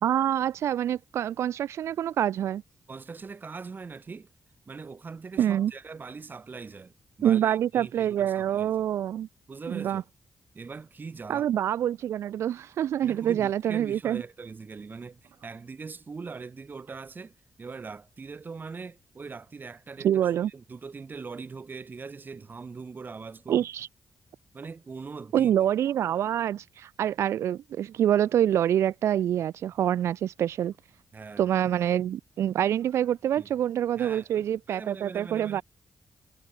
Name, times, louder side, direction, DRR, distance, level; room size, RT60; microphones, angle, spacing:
voice 1, 0.0-2.6 5.4-5.7 7.2-9.3 9.7-10.0 11.3-14.2 20.0-20.5 23.5-23.9 25.3-30.7 31.4-35.6, right 10 dB, 85° right, 0.8 m, -26 dB
voice 2, 2.9-4.3 4.7-8.7 9.5-10.0 10.5-11.5 13.0-23.7 24.5-25.5 31.1-31.5 33.4-33.5 34.0-35.6, right 4 dB, 45° right, 1.9 m, -41 dB
cardioid pair, 60°, 5 cm